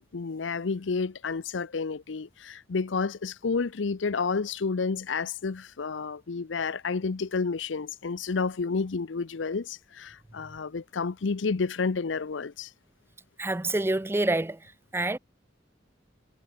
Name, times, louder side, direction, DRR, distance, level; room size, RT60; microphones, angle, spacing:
voice 1, 0.0-12.7, left 4 dB, 85° left, 0.6 m, -30 dB
voice 2, 13.4-14.6 14.9-15.2, right 2 dB, 15° right, 0.5 m, -27 dB
head